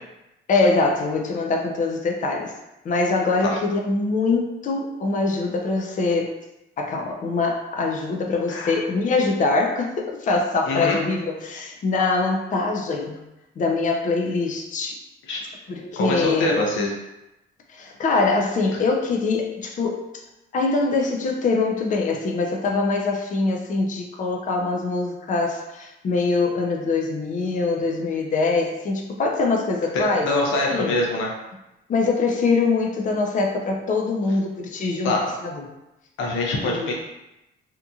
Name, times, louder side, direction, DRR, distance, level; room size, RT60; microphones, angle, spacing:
voice 1, 0.5-2.5 2.8-6.3 6.8-13.2 13.6-15.0 15.7-16.6 17.7-20.0 20.5-30.3 30.7-31.0 31.9-35.2 35.4-35.7 36.6-36.9, left 3 dB, 40° left, 1 dB, 0.5 m, -23 dB
voice 2, 10.7-11.0 15.3-15.4 16.0-16.9 29.9-31.3 35.0-35.3 36.2-36.9, left 2 dB, 80° left, -2 dB, 0.7 m, -24 dB
2.8 x 2.5 x 2.3 m, 0.95 s
cardioid pair, 90°, 20 cm